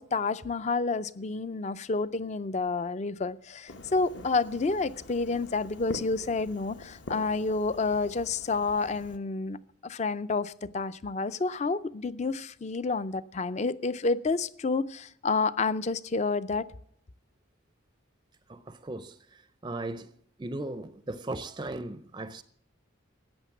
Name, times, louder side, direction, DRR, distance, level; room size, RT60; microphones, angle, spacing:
voice 1, 0.0-16.7, left 3 dB, 35° left, 0.4 m, -29 dB
Fireworks, 3.7-9.2, left 1 dB, 60° left, 1.0 m, -45 dB
voice 2, 18.5-20.1 20.4-22.4, right 2 dB, 20° right, 0.4 m, -37 dB
14.0 x 9.0 x 7.2 m
head